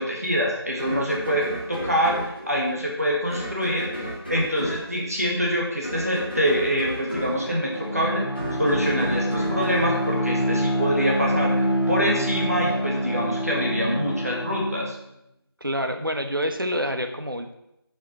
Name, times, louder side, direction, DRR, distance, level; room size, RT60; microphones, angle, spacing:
voice 1, 0.0-8.3 8.6-14.9, equal, 35° right, -3 dB, 1.9 m, -25 dB
sound 1, 0.8-11.0, equal, 25° left, 1.7 m, -34 dB
Bowed string instrument, 7.2-15.0, equal, 70° left, 3.5 m, -26 dB
voice 2, 15.6-17.5, equal, 55° right, 5 dB, 1.3 m, -27 dB
7.6 x 5.7 x 7.4 m, 0.83 s
figure-of-eight pair, 180°, 13 cm